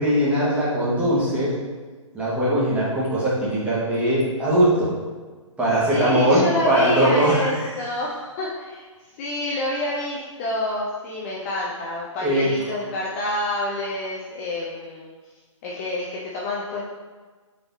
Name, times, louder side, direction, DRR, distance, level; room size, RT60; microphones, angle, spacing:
voice 1, 0.0-1.6 2.1-4.9 5.6-7.7 12.2-12.5, right 1 dB, 5° right, -8 dB, 1.2 m, -20 dB
voice 2, 5.9-8.9 9.2-15.1 15.6-16.8, left 2 dB, 25° left, -5 dB, 0.6 m, -28 dB
4.0 x 3.3 x 3.9 m, 1.4 s
hypercardioid pair, 140°, 17 cm